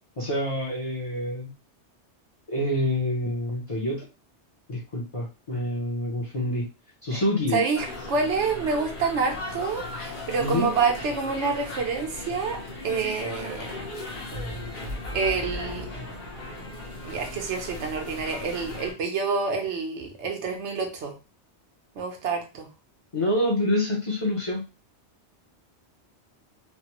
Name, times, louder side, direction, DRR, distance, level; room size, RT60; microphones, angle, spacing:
voice 1, 0.2-1.5 2.5-4.1 4.7-6.7 7.0-7.6 10.4-10.7 23.1-24.6, left 1 dB, 35° left, -3 dB, 0.6 m, -27 dB
voice 2, 7.5-13.8 15.1-15.9 17.0-21.1 22.0-22.7, right 5 dB, 80° right, 3 dB, 1.1 m, -28 dB
sound 1, 7.7-18.9, left 2 dB, 55° left, 0.9 m, -37 dB
sound 2, 14.3-17.8, left 1 dB, 45° right, 0.6 m, -38 dB
3.2 x 2.0 x 2.9 m, 0.30 s
omnidirectional pair, 1.2 m